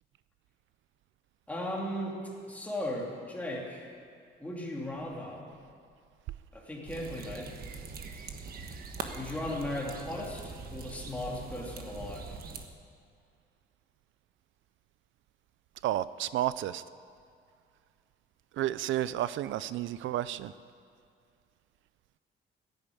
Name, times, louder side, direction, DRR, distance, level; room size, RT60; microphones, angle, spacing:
voice 1, 1.5-2.2 2.5-3.9 4.4-5.5 6.5-7.5 9.1-12.4, left 1 dB, 5° left, -3 dB, 2.8 m, -37 dB
sound 1, 6.9-12.7, right 5 dB, 50° right, 1.3 m, -42 dB
voice 2, 15.8-16.8 18.6-20.5, right 13 dB, 80° right, 16 dB, 0.4 m, -31 dB
15.5 x 10.5 x 8.5 m, 2.3 s
cardioid pair, 155°, 20 cm